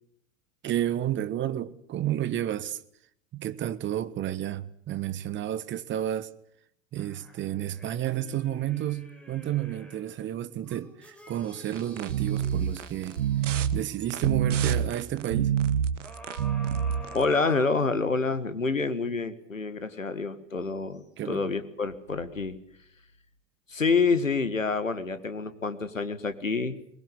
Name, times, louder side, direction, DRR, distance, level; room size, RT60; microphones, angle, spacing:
voice 1, 0.6-2.8 3.3-6.3 6.9-15.6 21.2-21.5, right 12 dB, 30° right, 1.3 m, -31 dB
sound 1, 7.0-10.1 10.6-14.3 16.0-18.4 18.9-19.0, left 1 dB, 5° left, 6.4 m, -48 dB
sound 2, 11.7-17.2, right 9 dB, 70° right, 1.3 m, -27 dB
voice 2, 17.1-22.6 23.7-26.8, left 4 dB, 85° left, 1.8 m, -27 dB
23.0 x 21.0 x 8.1 m
figure-of-eight pair, 80°, 38 cm